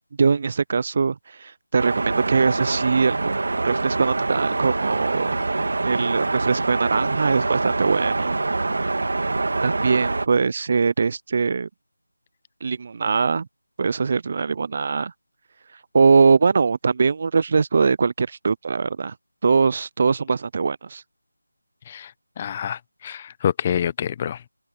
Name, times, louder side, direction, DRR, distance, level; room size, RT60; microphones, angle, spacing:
voice 1, 0.2-3.3 3.6-5.4 5.8-8.4 9.6-11.7 12.6-13.5 13.8-15.1 15.9-19.1 19.4-21.0, right 5 dB, 30° right, 0.4 m, -21 dB
sound 1, 1.8-10.3, right 3 dB, 55° right, 2.4 m, -25 dB
voice 2, 21.9-24.4, left 8 dB, 20° left, 0.7 m, -27 dB
figure-of-eight pair, 170°, 0 cm